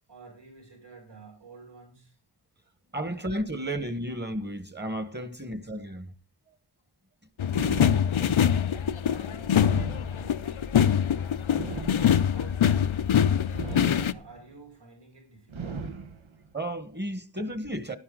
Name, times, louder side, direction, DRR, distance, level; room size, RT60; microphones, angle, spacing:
voice 1, 0.1-2.2 9.1-11.0 11.7-12.7 13.1-15.9, right 4 dB, 60° right, 6.8 m, -50 dB
voice 2, 2.9-6.1 16.5-18.0, right 1 dB, 20° right, 1.3 m, -33 dB
sound 1, 7.4-14.1, left 9 dB, 85° left, 0.7 m, -24 dB
sound 2, 7.5-8.6 9.5-10.6 11.5-12.6 13.5-14.5 15.5-16.5, right 4 dB, 90° right, 1.2 m, -38 dB
12.0 x 11.0 x 3.8 m
wide cardioid pair, 70°, 46 cm